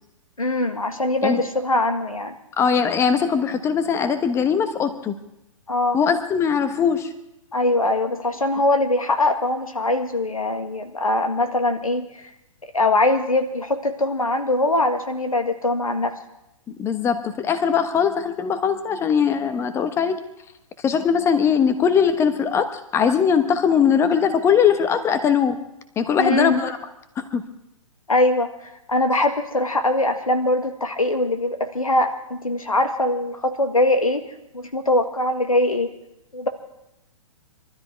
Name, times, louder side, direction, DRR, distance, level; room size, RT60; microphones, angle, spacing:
voice 1, 0.4-2.3 5.7-6.0 7.5-12.3 12.7-16.1 26.2-26.6 28.1-34.2 34.5-35.9 36.3-36.5, left 2 dB, 80° left, 6 dB, 1.7 m, -22 dB
voice 2, 2.6-5.1 5.9-7.1 16.8-20.2 20.8-25.6 26.0-26.8 27.2-27.4, left 7 dB, 15° left, 10 dB, 1.2 m, -20 dB
23.0 x 13.0 x 4.6 m, 0.89 s
figure-of-eight pair, 120°, 18 cm